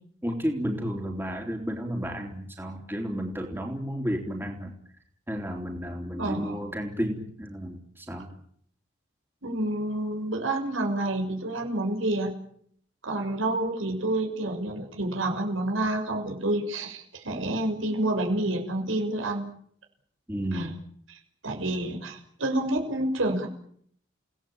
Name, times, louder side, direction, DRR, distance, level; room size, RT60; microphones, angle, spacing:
voice 1, 0.2-4.7 5.3-8.3 20.3-20.7, equal, 10° right, 2 dB, 3.8 m, -32 dB
voice 2, 6.2-6.6 9.4-12.3 13.0-19.5 20.5-20.7 21.1-23.5, right 1 dB, 85° right, 2 dB, 6.5 m, -28 dB
30.0 x 18.5 x 9.0 m, 0.66 s
head